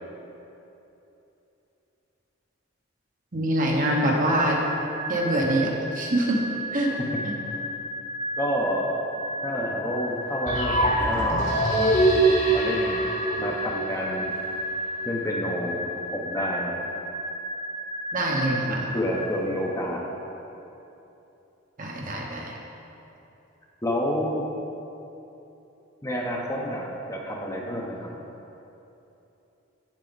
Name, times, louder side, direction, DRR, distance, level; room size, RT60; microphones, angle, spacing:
voice 1, 3.3-4.6 5.1-6.4 6.7-6.9 7.2-7.3 18.1-18.8 21.8-22.5, right 1 dB, 45° right, -1 dB, 1.1 m, -24 dB
sound 1, 4.3-19.9, equal, 25° right, 0.8 m, -33 dB
voice 2, 6.9-7.2 8.4-8.9 9.4-11.4 12.5-13.0 13.4-14.3 15.0-15.8 16.1-16.7 18.7-20.0 23.8-24.4 26.0-28.1, equal, 15° left, -1 dB, 0.8 m, -29 dB
sound 2, 10.5-14.4, right 2 dB, 40° left, 1.3 m, -23 dB
8.1 x 7.5 x 4.0 m, 3.0 s
head